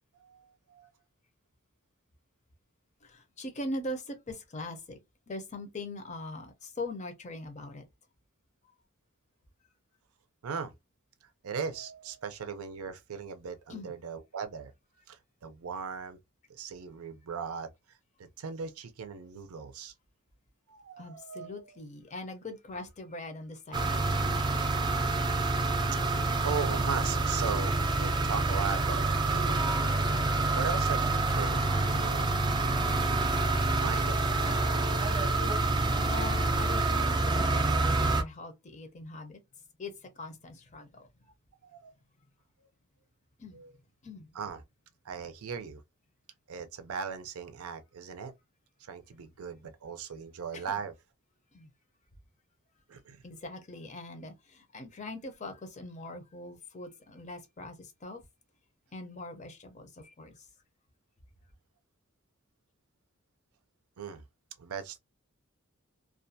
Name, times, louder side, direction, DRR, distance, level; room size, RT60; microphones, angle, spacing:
voice 1, 0.2-0.9 10.4-10.7 11.4-14.7 15.1-16.2 16.5-17.7 18.4-19.9 20.7-21.8 25.9-29.6 30.5-32.3 33.8-34.5 41.7-41.9 43.5-43.7 44.3-44.6 45.0-45.8 46.5-48.3 48.8-50.9 52.9-53.2 64.0-64.2 64.6-65.0, right 6 dB, 85° right, 0.5 m, -38 dB
voice 2, 3.0-5.0 5.3-7.8 13.7-13.9 21.0-24.2 35.6-35.8 36.1-39.4 39.8-41.1 43.4-43.6 44.0-44.4 50.5-50.8 51.5-51.7 53.2-58.2 58.9-60.5, left 2 dB, 35° left, 0.5 m, -42 dB
sound 1, 23.7-38.2, right 2 dB, 20° right, 0.3 m, -27 dB
2.4 x 2.2 x 2.6 m
head